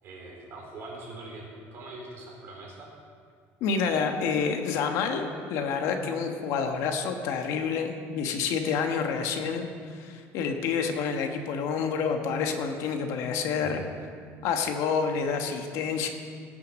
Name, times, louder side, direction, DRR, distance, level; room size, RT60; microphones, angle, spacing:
voice 1, 0.0-2.9 13.6-13.8, right 2 dB, 45° right, -2 dB, 3.9 m, -42 dB
voice 2, 3.6-13.8 14.4-16.1, left 6 dB, 60° left, 5 dB, 1.3 m, -28 dB
18.5 x 6.9 x 6.3 m, 2.1 s
cardioid pair, 165°, 6 cm